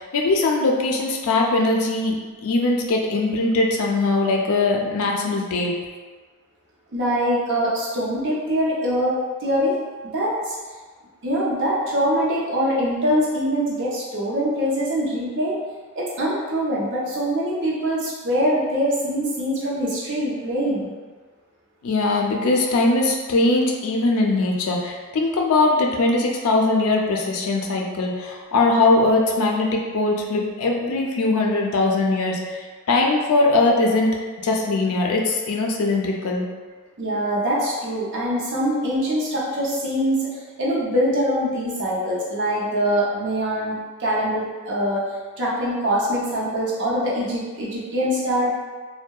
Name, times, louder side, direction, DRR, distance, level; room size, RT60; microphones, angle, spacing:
voice 1, 0.0-2.1 2.4-5.8 21.8-32.6 32.9-34.2 34.4-36.5, left 2 dB, 80° left, 0 dB, 0.4 m, -21 dB
voice 2, 6.9-9.8 10.1-10.6 11.2-15.6 15.9-20.9 37.0-45.0 45.4-48.5, equal, 55° right, -6 dB, 0.6 m, -23 dB
2.7 x 2.1 x 2.2 m, 1.4 s
head